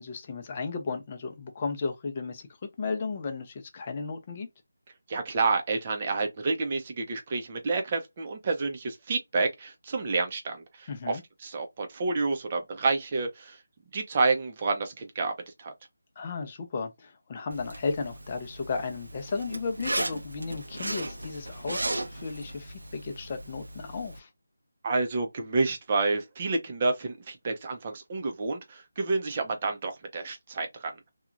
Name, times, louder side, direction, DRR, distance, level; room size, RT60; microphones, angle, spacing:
voice 1, 0.0-2.5 2.8-4.5 10.9-11.2 16.2-24.3, left 4 dB, 30° left, 0.6 m, -34 dB
voice 2, 5.1-13.6 13.9-15.3 15.6-15.7 24.8-30.9, right 3 dB, 30° right, 0.6 m, -29 dB
Zipper (clothing), 17.5-24.2, right 1 dB, 85° right, 0.7 m, -36 dB
2.9 x 2.3 x 2.5 m
figure-of-eight pair, 165°, 0 cm